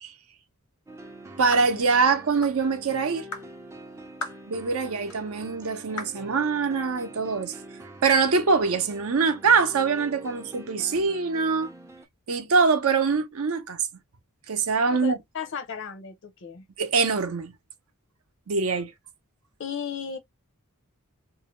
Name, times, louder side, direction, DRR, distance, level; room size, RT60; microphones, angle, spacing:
sound 1, 0.9-12.0, right 1 dB, 10° right, 0.4 m, -45 dB
voice 1, 1.4-3.3 4.5-7.5 8.0-11.7 12.3-13.8 14.5-15.2 16.8-17.5 18.5-18.9, right 4 dB, 70° right, 0.6 m, -23 dB
sound 2, 1.5-1.7 2.4-2.6 3.3-3.5 4.2-4.4 5.1-5.2 6.0-6.2, left 3 dB, 85° left, 1.1 m, -36 dB
voice 2, 14.9-16.6 19.6-20.2, left 6 dB, 55° left, 0.6 m, -35 dB
2.6 x 2.1 x 3.0 m
head